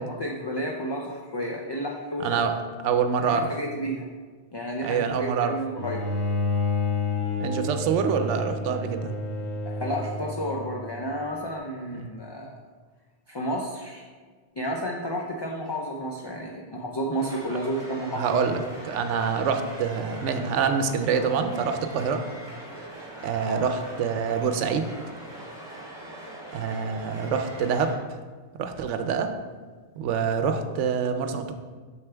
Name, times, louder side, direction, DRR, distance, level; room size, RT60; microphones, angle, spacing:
voice 1, 0.0-2.5 3.2-4.1 4.5-6.0 9.7-12.6 13.3-14.1 14.6-18.4 23.5-23.7, equal, 35° left, -1 dB, 0.4 m, -31 dB
voice 2, 2.2-2.6 2.8-3.5 4.8-5.5 7.4-9.2 11.9-12.1 18.2-22.2 23.2-24.9 26.5-27.9 28.6-29.3 30.0-31.5, right 6 dB, 90° right, 8 dB, 0.9 m, -26 dB
Bowed string instrument, 5.8-11.0, left 3 dB, 70° left, 1.6 m, -29 dB
sound 1, 17.1-28.0, right 1 dB, 5° right, 2.1 m, -41 dB
6.8 x 6.2 x 3.4 m, 1.5 s
omnidirectional pair, 1.2 m